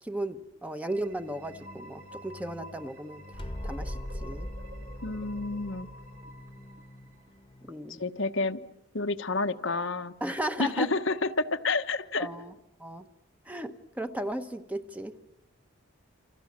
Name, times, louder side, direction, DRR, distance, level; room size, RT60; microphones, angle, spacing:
voice 1, 0.0-3.2 3.6-4.5 7.7-8.0 10.2-10.9 12.2-12.5 12.8-13.0 13.5-15.2, right 1 dB, 5° right, 8 dB, 1.1 m, -35 dB
sound 1, 0.9-7.6, equal, 45° right, 3.6 m, -50 dB
sound 2, 1.0-7.7, left 1 dB, 25° left, 1.3 m, -42 dB
voice 2, 5.0-5.9 7.9-8.6 8.9-10.1 10.6-12.3, left 3 dB, 65° left, 8 dB, 1.1 m, -29 dB
29.0 x 27.5 x 7.4 m, 0.83 s
head